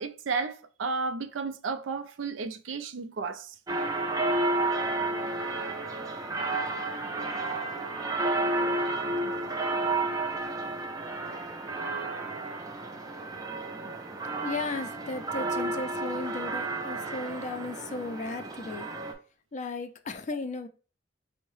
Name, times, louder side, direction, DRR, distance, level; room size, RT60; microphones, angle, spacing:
voice 1, 0.0-3.5, right 4 dB, 85° right, 0.4 m, -33 dB
sound 1, 3.7-19.1, right 2 dB, 20° right, 0.4 m, -31 dB
voice 2, 14.4-18.9 19.5-20.7, left 3 dB, 40° left, 0.4 m, -35 dB
4.5 x 2.0 x 3.1 m
head